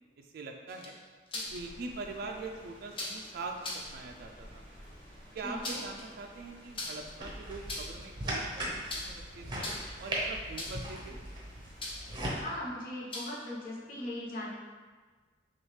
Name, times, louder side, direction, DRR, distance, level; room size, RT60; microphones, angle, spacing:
voice 1, 0.3-1.0 1.3-4.6 5.3-9.6 10.0-11.2, right 3 dB, 55° right, 2 dB, 0.3 m, -43 dB
sound 1, 0.7-1.6 2.9-3.2 3.6-3.9 5.4-6.0 6.7-7.1 7.5-8.1 8.9-9.2 9.5-10.0 10.6-10.9 11.8-12.1 13.1-13.5, left 2 dB, 30° left, 0.7 m, -39 dB
Rain, 1.4-12.2, equal, 15° left, 1.3 m, -54 dB
voice 2, 5.4-5.8 12.3-14.5, left 1 dB, 50° left, -5 dB, 1.0 m, -39 dB
sound 2, 7.2-12.4, right 1 dB, 25° right, 0.8 m, -38 dB
6.1 x 2.4 x 3.2 m, 1.4 s
head